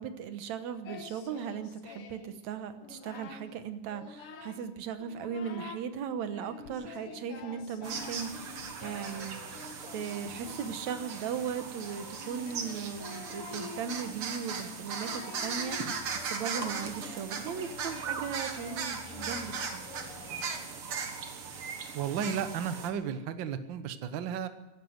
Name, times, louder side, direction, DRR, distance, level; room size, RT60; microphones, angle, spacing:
voice 1, 0.0-9.6 9.9-16.0 16.3-19.9, right 7 dB, 70° right, 10 dB, 2.2 m, -38 dB
Singing, 0.8-2.3 2.7-3.5 3.9-4.7 5.0-5.9 6.3-20.8, left 5 dB, 55° left, 1.9 m, -48 dB
sound 1, 7.8-22.9, right 5 dB, 50° right, 2.2 m, -38 dB
voice 2, 21.9-24.5, right 7 dB, 85° right, 10 dB, 1.0 m, -33 dB
15.0 x 12.0 x 7.9 m, 1.1 s
omnidirectional pair, 3.7 m